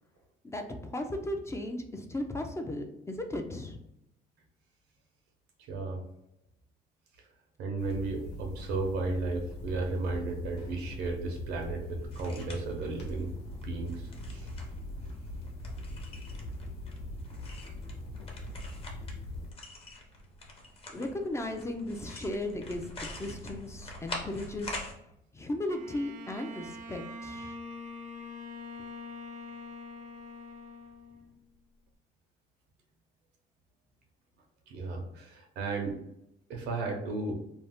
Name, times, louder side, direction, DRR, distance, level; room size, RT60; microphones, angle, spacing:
voice 1, 0.4-3.8 20.9-24.8 25.3-27.6, left 1 dB, 15° left, 4 dB, 0.3 m, -36 dB
voice 2, 5.7-6.0 7.6-13.3 13.6-14.5 34.7-36.0 36.5-37.3, right 3 dB, 85° right, 2 dB, 0.8 m, -34 dB
sound 1, 7.8-19.5, left 1 dB, 80° left, 0.8 m, -41 dB
sound 2, 12.1-24.9, left 2 dB, 35° left, 0.7 m, -46 dB
Bowed string instrument, 25.7-31.4, left 2 dB, 50° right, 0.4 m, -44 dB
2.6 x 2.0 x 3.4 m, 0.81 s
cardioid pair, 110°, 17 cm